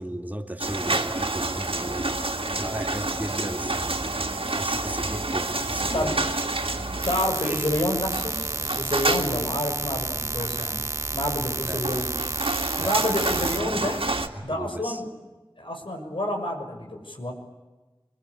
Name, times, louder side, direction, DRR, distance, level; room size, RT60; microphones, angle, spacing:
voice 1, 0.0-6.4 7.4-7.7 11.6-11.8 12.8-13.5 14.3-15.0, right 1 dB, 20° right, 5 dB, 2.3 m, -36 dB
sound 1, 0.6-14.3, right 2 dB, 85° right, 2.2 m, -29 dB
voice 2, 5.9-6.2 7.0-10.9 11.1-12.1 12.8-14.0 14.4-15.1 15.6-17.3, left 1 dB, 65° left, 3 dB, 6.3 m, -28 dB
sound 2, 7.0-13.6, right 2 dB, 35° right, 0.8 m, -31 dB
25.0 x 22.5 x 9.8 m, 1.2 s
wide cardioid pair, 45°, 9 cm